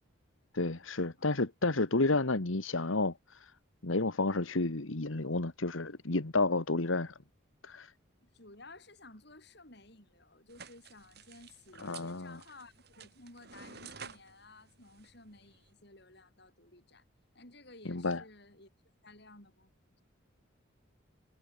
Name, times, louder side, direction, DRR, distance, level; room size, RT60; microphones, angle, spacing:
voice 1, 0.5-3.5 3.8-7.1 7.6-7.9 11.8-12.4 17.8-18.2, left 2 dB, 80° left, 1.6 m, -31 dB
voice 2, 8.2-17.1 17.3-18.7 19.0-19.7, left 2 dB, 55° left, 7.4 m, -55 dB
sound 1, 10.5-15.7, right 6 dB, 50° right, 2.7 m, -52 dB
head